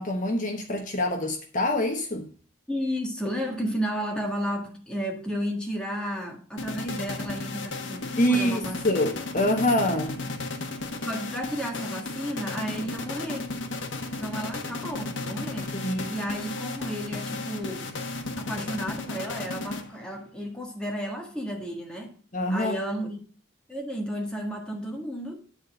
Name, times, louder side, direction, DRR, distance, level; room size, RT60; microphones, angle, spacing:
voice 1, 0.0-2.3 8.2-10.1 15.7-16.1 22.3-22.8, left 1 dB, 40° left, 1.1 m, -25 dB
voice 2, 2.7-9.2 11.0-13.5 14.2-15.8 16.1-17.9 18.4-22.2 22.5-23.2 23.7-25.4, equal, 5° left, 1.7 m, -33 dB
sound 1, 6.6-20.2, left 3 dB, 65° left, 1.3 m, -34 dB
10.0 x 4.2 x 6.5 m
head